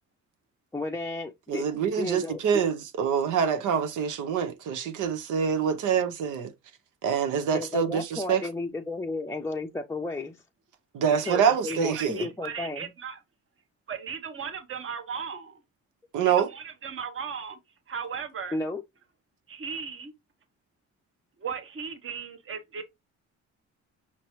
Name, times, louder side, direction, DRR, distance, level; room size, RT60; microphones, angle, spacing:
voice 1, 0.7-2.4 7.5-10.4 11.3-12.9 18.5-18.8, left 2 dB, 10° left, 0.5 m, -33 dB
voice 2, 1.5-6.5 7.0-8.5 10.9-12.3 16.1-16.5, right 7 dB, 90° right, 0.9 m, -26 dB
voice 3, 11.2-13.2 13.9-15.6 16.2-17.6 17.9-18.6 19.5-20.1 21.4-22.8, right 6 dB, 45° right, 1.1 m, -37 dB
5.7 x 3.0 x 3.0 m
cardioid pair, 90°, 30 cm